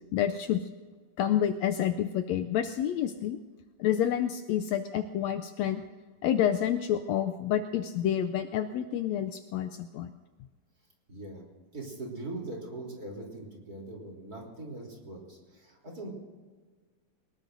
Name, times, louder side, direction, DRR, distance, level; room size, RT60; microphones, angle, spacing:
voice 1, 0.1-0.6 1.2-3.4 3.8-5.8 6.2-10.1, left 10 dB, 90° left, 9 dB, 1.5 m, -28 dB
voice 2, 11.1-11.4 11.7-16.1, right 2 dB, 30° right, -2 dB, 3.7 m, -41 dB
22.5 x 20.5 x 2.7 m, 1.5 s
omnidirectional pair, 3.7 m